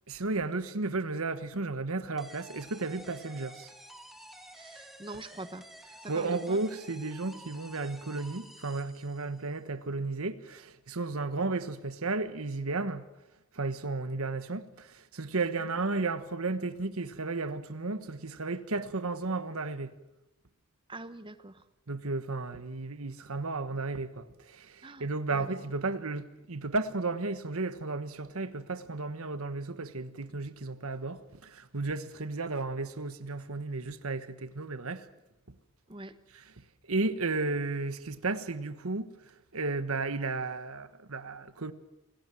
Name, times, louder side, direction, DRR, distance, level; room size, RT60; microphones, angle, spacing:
voice 1, 0.1-3.7 6.1-13.1 13.5-20.0 21.9-35.1 35.5-35.6 36.3-41.7, right 3 dB, 80° right, 1.3 m, -34 dB
sound 1, 2.2-9.5, right 1 dB, ahead, 2.3 m, -51 dB
voice 2, 4.5-5.7 6.0-6.6 20.9-21.6 24.8-25.5 35.9-36.2, right 2 dB, 25° right, 1.2 m, -44 dB
28.0 x 18.5 x 7.7 m
head